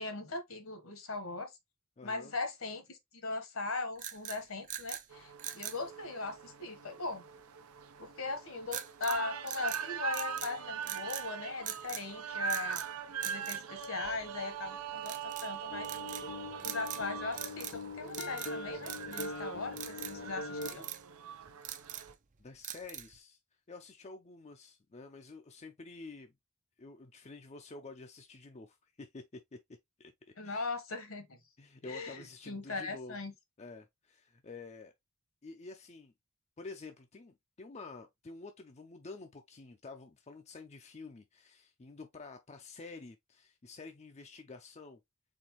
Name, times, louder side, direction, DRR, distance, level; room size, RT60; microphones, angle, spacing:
voice 1, 0.0-1.5 2.0-7.2 8.0-12.8 13.2-15.9 16.6-20.9 30.4-31.3 31.8-33.3, left 3 dB, 65° left, 1.2 m, -39 dB
voice 2, 2.0-2.4 22.4-23.4 23.7-26.3 26.8-29.6 30.0-30.1 30.4-30.7 31.6-33.2 33.6-34.9 35.4-36.1 36.6-45.0, left 3 dB, 30° left, 0.5 m, -49 dB
sound 1, 4.0-5.1 5.4-5.8 8.7-9.2 9.5-10.5 10.8-11.3 11.7-12.1 12.5-12.9 13.2-14.4 15.0-15.5 15.8-16.3 16.6-17.1 17.3-17.8 18.1-18.5 18.9-19.4 19.8-20.2 20.6-21.0 21.5-22.1 22.6-23.2, right 11 dB, 35° right, 0.5 m, -42 dB
sound 2, 5.1-22.1, right 8 dB, 85° right, 0.7 m, -42 dB
sound 3, 15.7-20.7, left 2 dB, 50° left, 0.9 m, -42 dB
4.3 x 3.9 x 3.0 m
head